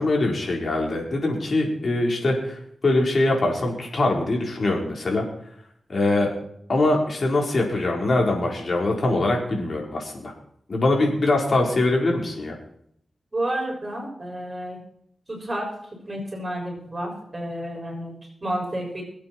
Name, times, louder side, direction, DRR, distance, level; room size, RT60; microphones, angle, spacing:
voice 1, 0.0-2.6 2.8-5.2 5.9-6.3 6.7-10.3 10.7-12.5, left 2 dB, 55° left, 0 dB, 4.4 m, -23 dB
voice 2, 13.3-14.8 15.3-15.7 16.1-19.0, right 1 dB, 30° right, -1 dB, 6.7 m, -30 dB
23.0 x 8.6 x 4.6 m, 0.68 s
cardioid pair, 65°, 0 cm